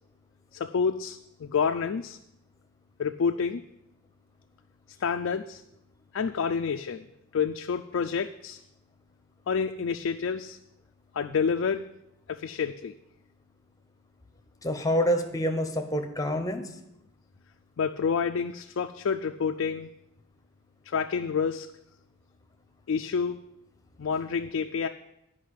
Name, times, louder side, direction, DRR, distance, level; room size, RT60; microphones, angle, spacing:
voice 1, 0.5-2.2 3.0-3.6 5.0-5.6 6.1-7.1 7.3-8.6 9.5-10.6 11.1-11.9 12.3-12.9 17.8-19.9 20.9-21.7 22.9-23.4 24.0-24.9, left 6 dB, 75° left, 5 dB, 0.4 m, -28 dB
voice 2, 14.6-16.6, equal, 15° left, 6 dB, 0.9 m, -27 dB
9.5 x 5.4 x 8.2 m, 0.84 s
head